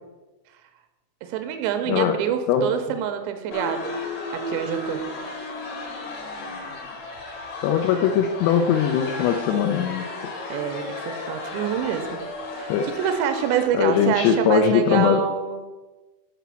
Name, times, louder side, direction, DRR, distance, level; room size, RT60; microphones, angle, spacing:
voice 1, 1.2-4.0 4.3-5.0 10.5-12.2 12.5-15.6, right 9 dB, 85° right, 7 dB, 2.8 m, -26 dB
sound 1, 3.5-13.7, left 2 dB, 65° left, 1.7 m, -34 dB
voice 2, 7.6-10.0 12.7-12.9 13.7-15.2, left 8 dB, 90° left, 5 dB, 2.3 m, -20 dB
7.5 x 5.0 x 6.9 m, 1.2 s
omnidirectional pair, 5.5 m